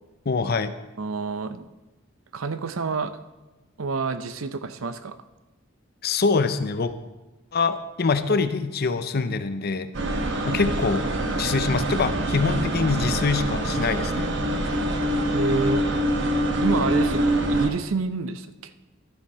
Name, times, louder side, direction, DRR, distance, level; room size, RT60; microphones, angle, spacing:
voice 1, 0.3-0.7 6.0-6.9 7.5-9.9 10.5-11.1 11.4-14.3, left 4 dB, 50° left, 11 dB, 0.6 m, -24 dB
voice 2, 1.0-1.7 2.3-3.1 3.8-5.2 15.3-15.9 16.6-18.7, right 4 dB, 85° right, 11 dB, 0.6 m, -28 dB
sound 1, 9.9-17.7, right 1 dB, 60° right, 1.1 m, -25 dB
12.5 x 7.3 x 4.6 m, 1.1 s
head